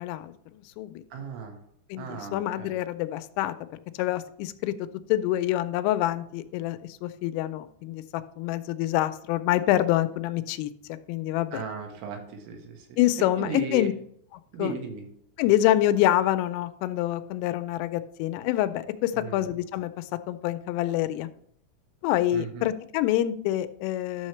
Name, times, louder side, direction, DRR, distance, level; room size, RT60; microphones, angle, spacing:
voice 1, 0.0-1.0 1.9-4.7 5.1-10.7 11.1-11.6 13.0-13.9 14.6-14.7 15.4-21.3 22.0-24.3, left 14 dB, 90° left, 11 dB, 3.2 m, -26 dB
voice 2, 1.1-1.6 2.0-2.8 11.5-12.8 13.3-13.9 14.5-15.0 19.1-19.5 22.3-22.7, right 4 dB, 80° right, 3 dB, 4.0 m, -36 dB
11.5 x 6.4 x 3.2 m, 0.69 s
omnidirectional pair, 5.7 m